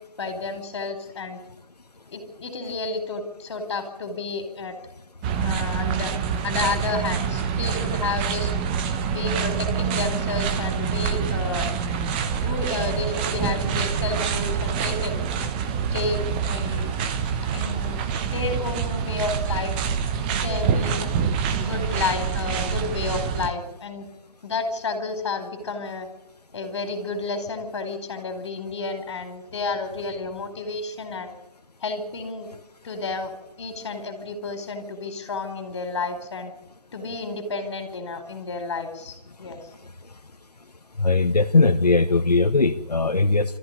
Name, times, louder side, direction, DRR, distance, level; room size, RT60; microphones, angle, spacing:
voice 1, 0.2-1.4 2.1-4.8 5.4-6.1 6.4-8.5 9.1-11.7 12.4-15.2 15.6-17.0 17.5-19.7 20.2-21.1 21.6-24.1 24.4-26.1 26.5-31.3 31.8-32.5 32.8-33.3 33.6-36.5 36.9-39.6, left 3 dB, 45° left, 7 dB, 4.7 m, -31 dB
sound 1, 5.2-23.5, right 6 dB, 15° right, 1.0 m, -26 dB
voice 2, 41.0-43.6, left 3 dB, 90° left, 5 dB, 1.5 m, -19 dB
26.5 x 14.5 x 9.9 m, 1.0 s
figure-of-eight pair, 155°, 20 cm